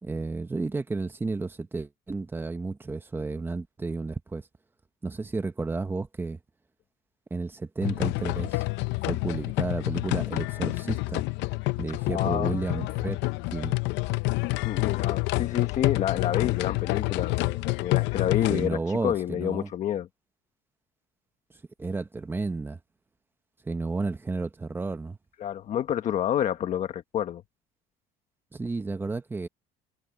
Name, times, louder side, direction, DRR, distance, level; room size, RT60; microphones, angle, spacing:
voice 1, 0.0-4.5 5.0-6.4 7.3-8.6 9.1-11.2 11.8-13.2 13.5-13.7 18.5-19.7 21.8-22.8 23.6-25.2 28.5-29.5, right 3 dB, 10° right, 1.0 m, -32 dB
sound 1, 7.8-18.7, left 23 dB, 70° left, 0.6 m, -28 dB
voice 2, 12.1-12.5 14.6-20.1 25.4-27.4, left 10 dB, 40° left, 1.3 m, -29 dB
cardioid pair, 165°, 19 cm